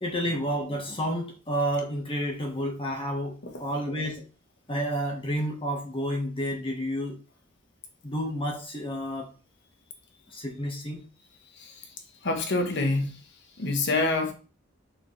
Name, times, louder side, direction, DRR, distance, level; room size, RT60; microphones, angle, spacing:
voice 1, 0.0-4.3 4.7-7.2 8.0-9.3 10.3-11.0, equal, 25° left, 1.6 m, -30 dB
voice 2, 11.6-11.9 12.2-13.2 13.6-14.3, left 2 dB, 60° left, 1.4 m, -27 dB
6.6 x 6.1 x 3.4 m
head